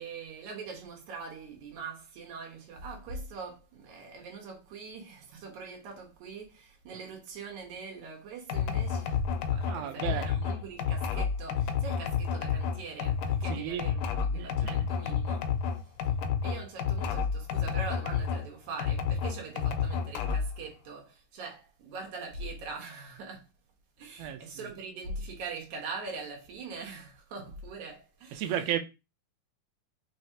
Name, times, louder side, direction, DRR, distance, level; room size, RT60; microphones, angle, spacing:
voice 1, 0.0-16.2 16.4-23.5 24.0-28.7, right 4 dB, 70° right, 2.6 m, -42 dB
sound 1, 8.5-18.5 18.8-20.6, left 7 dB, 90° left, 2.2 m, -30 dB
voice 2, 9.7-10.3 13.5-13.9 14.3-14.8 24.2-24.4 28.4-28.8, right 10 dB, 85° right, 1.5 m, -33 dB
5.5 x 3.1 x 2.8 m
omnidirectional pair, 3.7 m